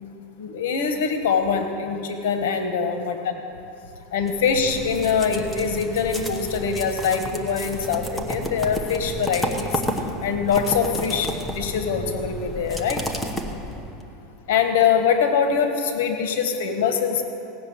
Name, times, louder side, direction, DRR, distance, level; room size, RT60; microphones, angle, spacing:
voice 1, 0.4-3.3 4.1-9.8 10.2-13.0 14.5-17.2, left 6 dB, 85° left, 6 dB, 1.1 m, -23 dB
sound 1, 4.3-14.0, equal, 5° left, 0.9 m, -31 dB
17.0 x 6.8 x 8.6 m, 2.9 s
supercardioid pair, 155°, 0 cm